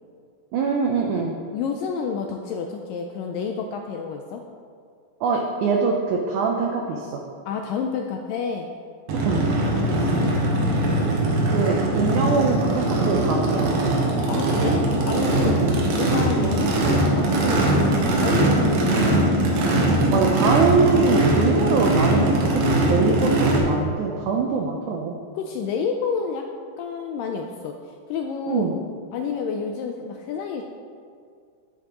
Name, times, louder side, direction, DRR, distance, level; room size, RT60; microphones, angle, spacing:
voice 1, 0.5-1.4 5.2-7.2 9.2-9.4 11.5-13.7 15.4-15.8 20.1-25.2 28.5-28.7, right 4 dB, 85° right, 1 dB, 1.7 m, -23 dB
voice 2, 1.5-4.4 7.5-8.7 9.7-10.8 14.3-15.6 15.9-19.2 23.1-23.6 25.4-26.5 26.8-27.8 28.1-28.7 29.1-30.6, left 6 dB, 85° left, 3 dB, 2.0 m, -30 dB
Race car auto racing / Idling / Accelerating revving vroom, 9.1-23.6, right 1 dB, 70° right, 2.6 m, -21 dB
9.9 x 9.5 x 3.0 m, 2.2 s
omnidirectional pair, 4.4 m